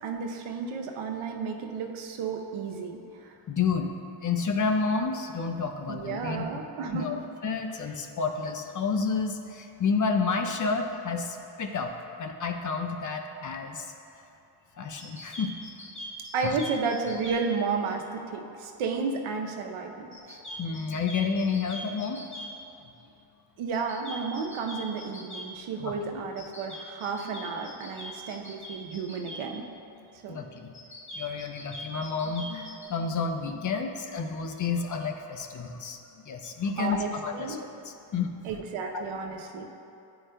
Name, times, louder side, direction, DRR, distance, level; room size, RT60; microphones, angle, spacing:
voice 1, 0.0-3.3 5.9-7.2 16.3-20.4 23.6-29.7 30.2-30.4 36.8-37.6 38.4-39.7, right 4 dB, 80° right, 2 dB, 0.8 m, -32 dB
voice 2, 3.5-3.9 4.2-6.4 6.9-11.9 12.2-13.9 14.8-15.5 16.4-16.6 20.5-22.5 25.8-26.2 30.0-30.1 30.3-30.8 31.1-36.0 36.2-38.3 38.9-39.1, left 5 dB, 40° left, 4 dB, 0.5 m, -30 dB
sound 1, 15.0-17.4 20.1-22.5 23.7-25.5 26.4-29.4 30.7-32.9, left 1 dB, 25° left, 1.3 m, -42 dB
9.8 x 4.7 x 2.2 m, 2.7 s
cardioid pair, 80°, 49 cm